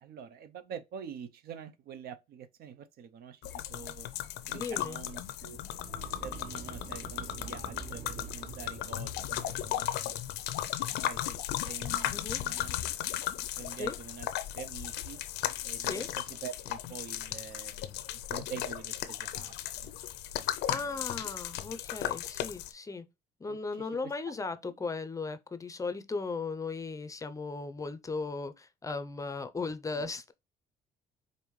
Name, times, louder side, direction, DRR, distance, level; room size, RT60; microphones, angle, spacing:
voice 1, 0.0-4.1 4.5-5.6 6.0-10.2 10.8-12.7 13.6-14.3 14.5-15.2 15.6-18.0 18.3-20.0 20.9-21.0 23.5-23.9 24.6-24.7 29.9-30.0, right 7 dB, 65° right, 0.6 m, -46 dB
sound 1, 3.4-22.7, left 12 dB, 85° left, 0.6 m, -36 dB
voice 2, 4.5-5.0 12.1-12.4 13.8-13.9 15.8-16.1 20.7-23.0 23.4-30.3, left 4 dB, 20° left, 0.5 m, -37 dB
sound 2, 5.5-10.7, right 7 dB, 45° right, 0.9 m, -47 dB
5.3 x 2.5 x 3.1 m
cardioid pair, 110°, 17 cm